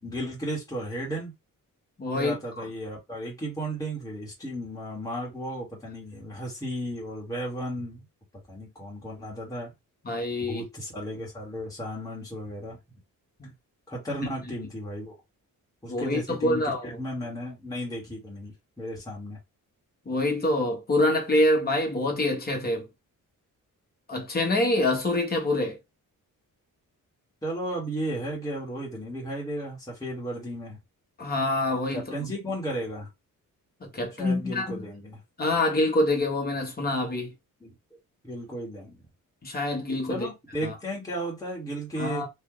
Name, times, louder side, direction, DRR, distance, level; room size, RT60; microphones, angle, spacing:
voice 1, 0.0-1.3 2.1-8.0 8.5-9.7 10.4-12.8 13.9-15.2 15.8-19.4 27.4-30.8 31.9-33.1 34.2-35.2 37.6-37.7 38.2-39.1 40.1-42.2, right 1 dB, 10° left, 1.5 m, -34 dB
voice 2, 2.0-2.3 10.0-10.6 13.4-13.5 15.9-16.9 20.1-22.9 24.1-25.8 31.2-32.3 33.9-34.8 35.4-37.3 39.4-40.3 40.6-40.7 42.0-42.3, left 2 dB, 25° left, 1.1 m, -26 dB
3.0 x 2.6 x 3.8 m
wide cardioid pair, 175°, 35 cm